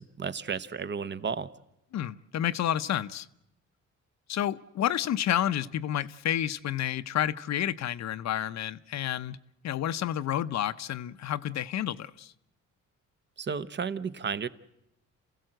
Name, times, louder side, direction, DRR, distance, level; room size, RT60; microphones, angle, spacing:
voice 1, 0.0-1.5 13.4-14.5, right 6 dB, 35° right, 1.0 m, -33 dB
voice 2, 1.9-3.3 4.3-9.4 9.6-12.3, left 11 dB, 65° left, 0.7 m, -30 dB
28.5 x 16.0 x 7.8 m
cardioid pair, 90°, 30 cm